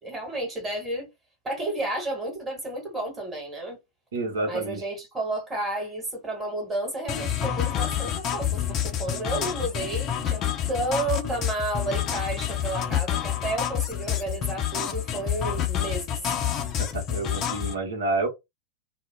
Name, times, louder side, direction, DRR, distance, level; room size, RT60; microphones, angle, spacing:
voice 1, 0.0-1.1 1.4-3.8 4.4-16.2, right 2 dB, 15° right, 1.3 m, -31 dB
voice 2, 4.1-4.8 16.8-18.3, right 2 dB, 65° right, 0.9 m, -29 dB
sound 1, 7.1-17.7, left 10 dB, 35° left, 0.6 m, -28 dB
2.4 x 2.0 x 3.3 m
figure-of-eight pair, 90°, 0 cm